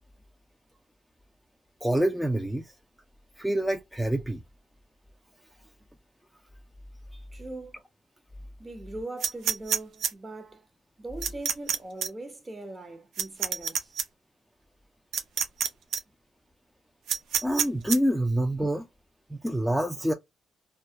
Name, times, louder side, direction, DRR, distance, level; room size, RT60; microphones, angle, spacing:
voice 1, 1.8-2.7 3.4-4.4 17.4-18.9 19.3-20.1, right 1 dB, ahead, 0.4 m, -26 dB
voice 2, 7.3-7.8 8.6-10.7 11.0-13.9, right 2 dB, 25° right, 0.8 m, -40 dB
sound 1, 9.2-10.1 11.2-11.8 12.0-12.1 13.2-14.0 15.1-15.7 15.9-16.0 17.1-18.0, right 7 dB, 75° right, 0.5 m, -27 dB
2.3 x 2.0 x 2.7 m
cardioid pair, 90°, 0 cm